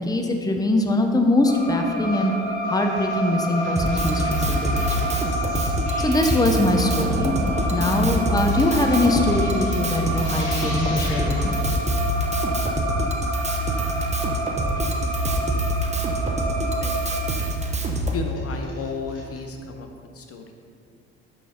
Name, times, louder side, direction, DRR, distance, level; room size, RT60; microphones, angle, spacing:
voice 1, 0.0-2.3 2.7-5.1 5.5-7.3 7.7-11.6, left 2 dB, 10° left, 3 dB, 0.8 m, -22 dB
sound 1, 1.4-17.3, equal, 75° right, 1.9 m, -29 dB
sound 2, 2.1-2.3 2.6-11.8 12.2-12.3 12.6-12.7 13.0-13.1 13.4-13.5 13.9-14.3 14.7-15.4 16.0-16.1 16.8-16.9 17.2-17.5 17.9-19.4, left 1 dB, 60° left, 1.9 m, -38 dB
Drum kit, 3.7-18.2, right 1 dB, 20° right, 1.0 m, -26 dB
voice 2, 18.1-19.9 20.1-20.5, left 4 dB, 40° left, 4 dB, 0.8 m, -33 dB
6.2 x 5.7 x 5.1 m, 2.3 s
hypercardioid pair, 50°, 35 cm